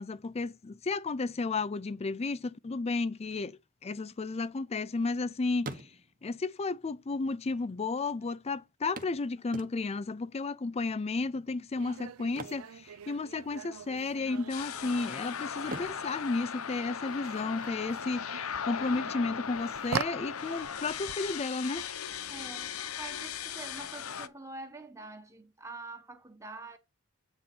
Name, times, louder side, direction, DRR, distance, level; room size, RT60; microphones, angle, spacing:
voice 1, 0.0-5.9 6.2-21.9, left 3 dB, 30° left, 0.4 m, -33 dB
sound 1, 4.1-5.2 5.5-6.4 7.3-7.4 7.6-7.7 9.0-10.1 12.2-13.5 13.8-14.0 14.5-15.1 15.6-17.4 19.4-19.5 19.9-20.0, right 2 dB, 40° right, 1.2 m, -45 dB
sound 2, 11.8-23.1, right 7 dB, 75° right, 0.5 m, -44 dB
sound 3, 14.5-24.3, left 7 dB, 80° left, 0.8 m, -38 dB
voice 2, 22.3-26.8, right 3 dB, 15° right, 1.3 m, -46 dB
8.6 x 3.9 x 5.9 m
head